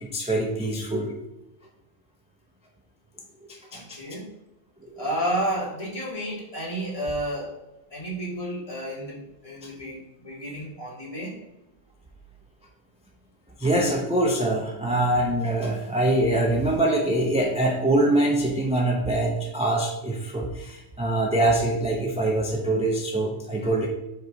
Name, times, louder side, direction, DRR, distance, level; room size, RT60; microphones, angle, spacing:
voice 1, 0.0-1.1 3.5-4.0 4.8-5.1 13.6-23.9, right 1 dB, 10° right, -1 dB, 0.5 m, -24 dB
voice 2, 3.7-4.3 5.0-7.6 7.9-11.4, right 1 dB, 25° left, -6 dB, 2.0 m, -31 dB
5.4 x 4.6 x 4.8 m, 0.95 s
omnidirectional pair, 1.3 m